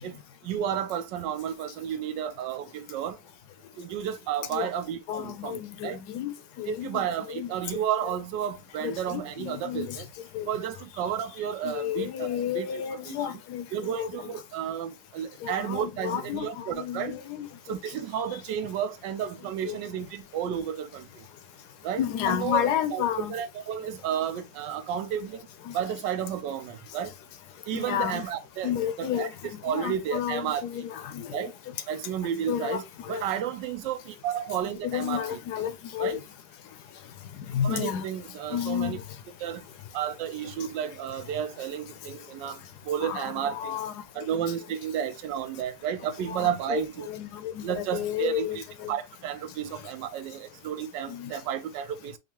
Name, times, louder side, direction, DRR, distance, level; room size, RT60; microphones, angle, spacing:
voice 1, 0.0-3.2 3.8-6.0 6.7-10.1 10.5-13.4 13.7-17.2 17.7-21.0 21.8-23.0 23.3-25.4 25.7-27.1 27.7-28.7 29.0-30.7 31.3-31.5 31.9-35.6 36.0-36.2 37.6-39.0 39.4-39.6 39.9-43.8 44.1-47.1 47.6-52.2, right 9 dB, 80° right, 1.2 m, -32 dB
voice 2, 5.1-7.0 7.3-7.8 8.8-10.0 10.3-10.5 11.6-14.4 15.4-17.5 19.6-19.8 22.0-23.3 25.7-25.8 27.7-28.2 28.6-31.5 32.5-33.2 34.8-36.2 37.3-38.1 38.5-39.2 40.6-40.7 43.0-43.9 44.2-44.4 46.3-46.8 47.1-48.9 49.7-49.9 51.1-51.3, left 10 dB, 75° left, 1.0 m, -32 dB
5.4 x 2.4 x 2.8 m
omnidirectional pair, 1.9 m